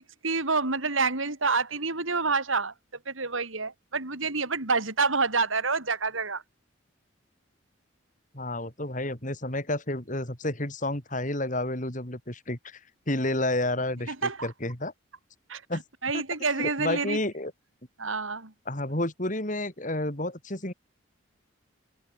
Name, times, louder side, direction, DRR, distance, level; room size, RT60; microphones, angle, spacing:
voice 1, 0.0-2.7 3.1-6.4 14.1-14.5 15.5-15.6 16.0-17.2 18.0-18.5, right 4 dB, 85° right, 4.1 m, -28 dB
voice 2, 8.3-12.8 13.1-14.9 15.7-15.8 16.1-16.2 16.6-17.5 18.7-20.7, left 1 dB, 40° left, 4.3 m, -30 dB
open air
head